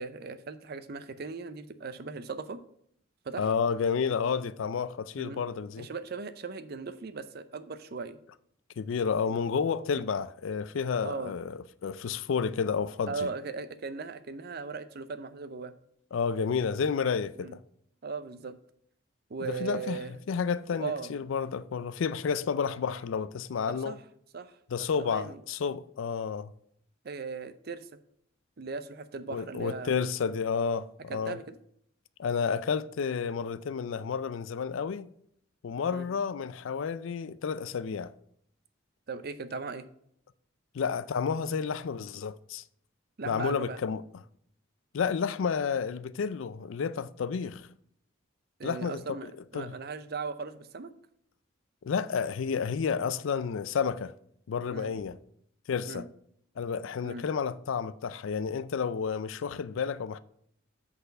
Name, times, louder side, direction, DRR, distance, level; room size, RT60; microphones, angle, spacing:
voice 1, 0.0-2.6 3.2-3.5 5.2-5.4 5.8-8.2 9.2-9.4 11.0-11.3 13.1-15.7 17.4-17.5 18.0-18.6 19.3-20.2 20.7-21.1 23.7-24.0 24.3-24.5 25.0-25.4 27.0-27.9 28.6-29.9 31.1-31.6 35.9-36.1 39.1-39.9 43.2-43.8 48.6-50.9 54.7-54.9 55.9-56.0 57.0-57.2, right 4 dB, 50° right, 0.6 m, -38 dB
voice 2, 3.4-5.9 8.8-13.3 16.1-17.6 19.4-20.0 20.3-24.0 24.7-26.5 29.3-31.4 32.2-35.1 35.6-38.1 40.7-42.6 43.2-44.0 44.9-47.7 48.6-49.8 51.8-54.1 54.5-55.2 55.7-56.1 56.6-60.2, left 6 dB, 70° left, 0.4 m, -31 dB
8.0 x 4.1 x 5.3 m
head